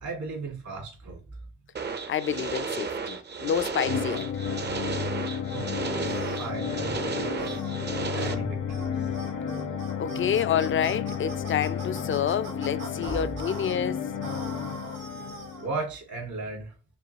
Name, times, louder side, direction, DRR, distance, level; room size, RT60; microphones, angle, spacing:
voice 1, 0.0-1.2 5.3-7.6 8.2-9.1 15.6-16.7, right 3 dB, 70° right, 1.9 m, -36 dB
sound 1, 1.8-8.3, right 5 dB, 35° right, 0.6 m, -33 dB
voice 2, 2.1-4.3 10.0-14.0, left 8 dB, 40° left, 0.4 m, -28 dB
sound 2, 3.8-15.8, left 7 dB, 70° left, 0.9 m, -32 dB
sound 3, 6.0-6.6 7.4-7.7 8.2-8.4 8.7-8.9 9.1-13.7 14.2-15.7, right 3 dB, 90° right, 1.8 m, -42 dB
5.4 x 2.3 x 2.8 m
cardioid pair, 90°, 32 cm